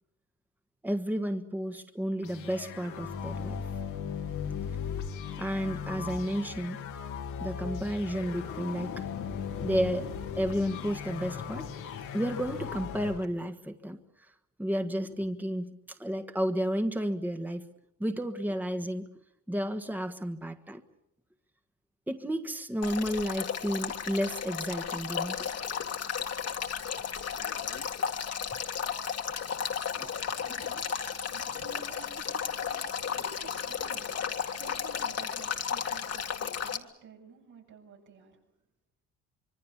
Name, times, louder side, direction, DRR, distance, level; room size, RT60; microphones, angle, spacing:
voice 1, 0.8-3.6 5.4-6.8 7.4-9.0 9.6-10.1 10.4-11.7 12.1-14.0 14.6-17.7 18.0-19.1 19.5-20.8 22.1-25.5 30.0-30.1, equal, 5° right, 6 dB, 1.5 m, -32 dB
sound 1, 2.2-13.3, left 7 dB, 85° left, 2.4 m, -37 dB
Male speech man speaking / Stream / Trickle dribble, 22.8-36.8, left 7 dB, 55° left, 2.0 m, -34 dB
voice 2, 30.2-38.4, right 6 dB, 80° right, 0 dB, 7.8 m, -52 dB
25.5 x 23.5 x 7.2 m, 0.82 s
cardioid pair, 90°, 30 cm